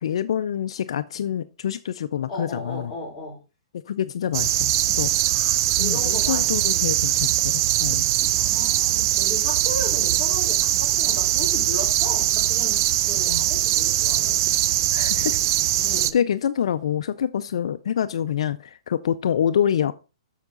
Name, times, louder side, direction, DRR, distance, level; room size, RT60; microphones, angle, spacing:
voice 1, 0.0-2.9 3.7-5.1 5.8-8.1 13.3-13.4 14.9-15.4 16.1-19.9, left 9 dB, 70° left, 0.4 m, -26 dB
voice 2, 2.3-3.4 5.3-7.1 8.3-14.4 15.8-16.2, left 2 dB, 15° left, 4.4 m, -36 dB
sound 1, 4.3-16.1, right 13 dB, 40° right, 0.5 m, -21 dB
7.2 x 6.6 x 3.9 m
hypercardioid pair, 150°, 3 cm